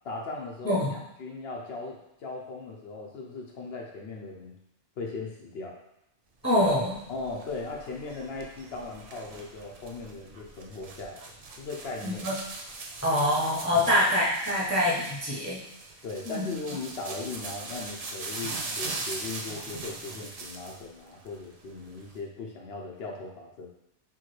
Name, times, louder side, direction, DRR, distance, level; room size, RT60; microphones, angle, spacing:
voice 1, 0.0-4.6 5.0-5.8 7.1-11.2 11.6-12.2 13.7-13.9 16.0-23.7, left 3 dB, 65° left, -1 dB, 0.8 m, -38 dB
voice 2, 0.6-1.0 6.4-7.0 12.0-12.3 13.0-15.6 16.3-16.5, left 1 dB, 15° left, -6 dB, 0.7 m, -25 dB
sound 1, 6.6-20.9 21.2-22.2, right 3 dB, 50° right, 0.4 m, -40 dB
4.6 x 3.5 x 3.1 m, 0.87 s
omnidirectional pair, 1.2 m